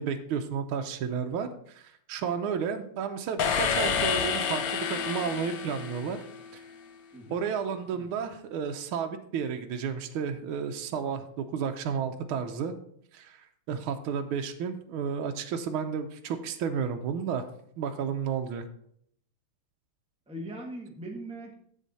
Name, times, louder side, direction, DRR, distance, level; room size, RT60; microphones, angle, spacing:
voice 1, 0.0-6.2 6.5-6.6 7.3-12.7 13.1-13.4 13.7-17.4 17.8-18.6, right 7 dB, 80° right, 6 dB, 1.6 m, -32 dB
sound 1, 3.4-6.5, left 6 dB, 70° left, 0.8 m, -29 dB
voice 2, 20.3-21.6, right 1 dB, 5° right, 0 dB, 1.1 m, -40 dB
7.4 x 7.4 x 4.1 m, 0.67 s
omnidirectional pair, 2.3 m